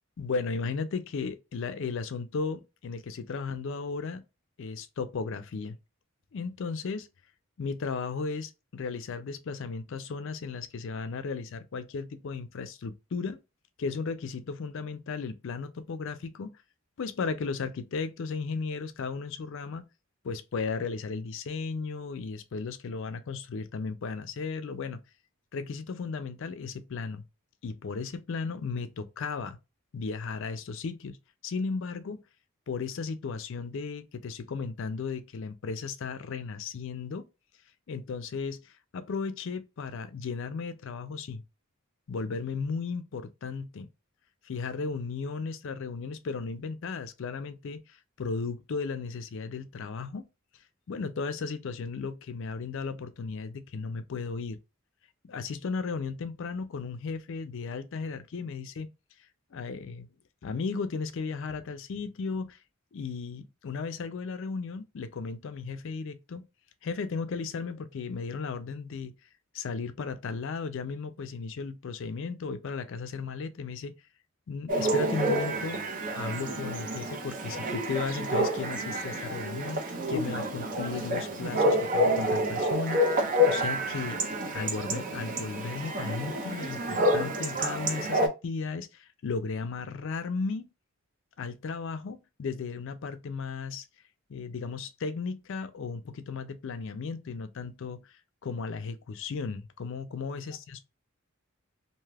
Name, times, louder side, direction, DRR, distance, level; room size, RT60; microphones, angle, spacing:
voice 1, 0.2-4.2 4.6-5.8 6.3-7.1 7.6-13.4 13.8-16.5 17.0-19.9 20.2-25.0 25.5-27.2 27.6-29.6 29.9-31.2 31.4-32.2 32.7-37.2 37.9-41.4 42.1-43.9 44.4-50.2 50.9-54.6 55.2-58.9 59.5-60.1 60.4-62.6 62.9-66.4 66.8-69.1 69.5-73.9 74.5-84.2 84.5-90.7 91.4-93.9 94.3-98.0 98.4-100.8, left 4 dB, 60° left, 0.4 m, -35 dB
Chatter / Bark / Livestock farm animals working animals, 74.7-88.3, equal, 40° right, 0.6 m, -28 dB
2.6 x 2.3 x 3.2 m
head